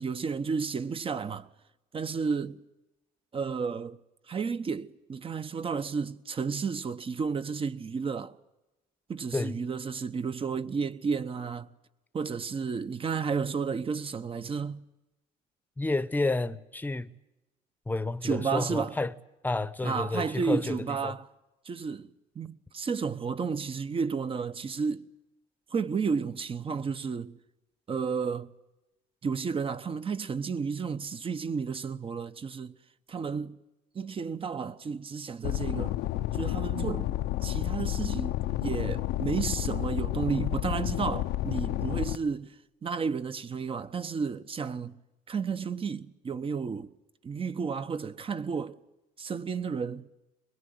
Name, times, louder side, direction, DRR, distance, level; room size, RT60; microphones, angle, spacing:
voice 1, 0.0-1.5 1.9-2.6 3.3-4.0 4.3-8.4 9.1-11.7 12.1-14.8 18.2-18.9 19.8-21.3 21.6-25.0 25.7-27.4 27.9-28.5 29.2-32.7 33.1-33.6 33.9-36.0 36.3-42.5 42.8-45.0 45.3-46.9 47.2-48.8 49.2-50.1, right 5 dB, 30° right, 1.1 m, -32 dB
voice 2, 15.8-17.1 17.9-19.1 19.4-21.1, left 2 dB, 10° left, 1.0 m, -30 dB
sound 1, 35.4-42.2, left 15 dB, 85° left, 0.8 m, -30 dB
22.5 x 22.0 x 9.6 m
cardioid pair, 110°, 17 cm